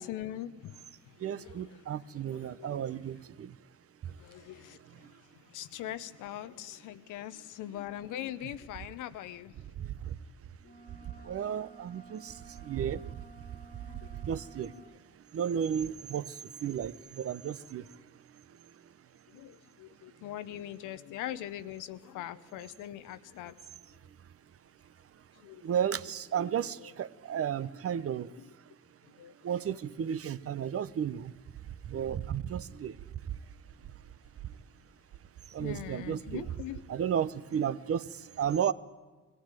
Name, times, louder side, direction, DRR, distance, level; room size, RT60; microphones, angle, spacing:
voice 1, 0.0-3.1 4.2-10.1 10.6-10.7 11.0-11.1 13.8-14.2 14.7-14.9 16.7-16.8 17.8-17.9 19.3-24.0 25.3-25.7 26.8-26.9 28.4-28.6 29.0-29.3 29.6-30.2 35.6-37.1, left 12 dB, 90° left, 12 dB, 0.8 m, -43 dB
voice 2, 1.2-3.6 4.0-4.1 5.0-5.1 9.8-10.2 10.9-11.0 11.2-13.2 14.2-14.7 15.3-18.0 25.6-28.3 29.4-31.3 31.8-33.0 33.2-33.3 35.5-36.4 36.9-38.7, right 8 dB, 50° right, 16 dB, 0.7 m, -33 dB
sound 1, 10.6-15.0, right 3 dB, 30° left, 1.8 m, -54 dB
20.5 x 15.0 x 9.0 m, 1.3 s
cardioid pair, 90°, 30 cm